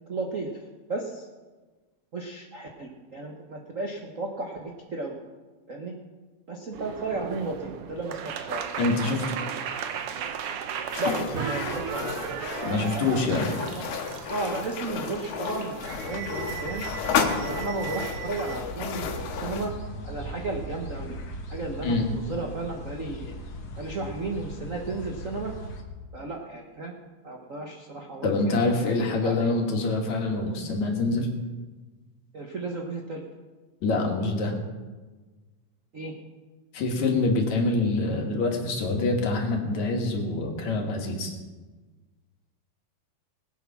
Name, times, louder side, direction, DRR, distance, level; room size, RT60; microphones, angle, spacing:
voice 1, 0.1-0.6 0.9-1.3 2.1-5.2 5.7-5.9 6.5-8.6 11.0-12.1 13.7-13.9 14.3-16.9 17.4-19.7 20.0-21.2 21.5-23.4 23.8-25.5 26.1-27.0 27.2-28.7 29.0-29.5 32.3-33.2 35.9-36.1, right 3 dB, 85° right, 0 dB, 0.7 m, -34 dB
sound 1, 6.7-18.6, right 8 dB, 65° right, 1.6 m, -36 dB
voice 2, 8.8-9.2 12.6-13.5 21.8-22.1 28.2-31.3 33.8-34.5 36.7-41.3, left 3 dB, 70° left, 1 dB, 3.1 m, -25 dB
sound 2, 10.9-19.7, left 6 dB, 90° left, 2.6 m, -32 dB
sound 3, 15.9-25.8, equal, 50° left, 1.7 m, -39 dB
20.0 x 8.3 x 5.9 m, 1.3 s
omnidirectional pair, 3.4 m